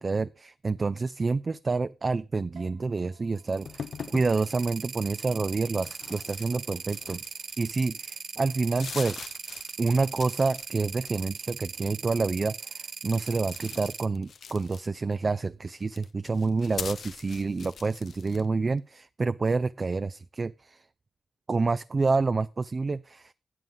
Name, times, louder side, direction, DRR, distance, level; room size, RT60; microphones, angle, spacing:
voice 1, 0.0-7.2 7.6-9.2 9.8-20.8 21.5-23.3, right 3 dB, 40° right, 0.4 m, -28 dB
sound 1, 2.6-9.3, right 5 dB, 80° right, 3.5 m, -63 dB
sound 2, 3.4-14.1, right 6 dB, 65° right, 0.9 m, -39 dB
sound 3, 3.7-4.3 5.7-7.7 8.2-8.3 8.6-10.7 11.0-11.5 13.1-15.1 15.8-18.5, left 6 dB, 65° left, 0.5 m, -42 dB
12.0 x 7.8 x 3.9 m
supercardioid pair, 50°, 0 cm